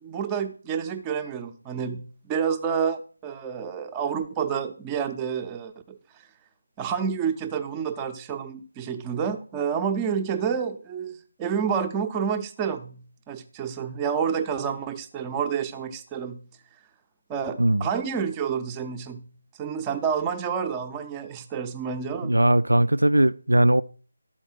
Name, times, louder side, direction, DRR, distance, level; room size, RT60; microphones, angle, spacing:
voice 1, 0.0-6.0 6.8-16.5 17.3-19.3 19.6-22.3, right 7 dB, 15° right, 0.5 m, -29 dB
voice 2, 17.6-17.9 22.2-23.8, right 1 dB, 70° right, 0.3 m, -19 dB
12.0 x 4.3 x 6.0 m
figure-of-eight pair, 155°, 0 cm